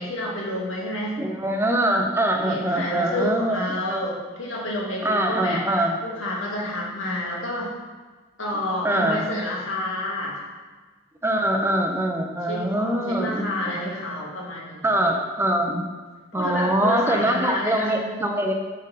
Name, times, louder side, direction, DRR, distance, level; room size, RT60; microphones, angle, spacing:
voice 1, 0.0-1.2 2.4-7.7 8.4-10.4 12.5-15.1 16.3-18.0, left 1 dB, 80° left, -3 dB, 1.8 m, -29 dB
voice 2, 1.2-4.0 5.0-5.9 8.8-9.3 11.2-13.9 14.8-15.8 16.3-18.5, right 1 dB, 10° right, 3 dB, 0.6 m, -23 dB
8.9 x 4.0 x 4.1 m, 1.4 s
head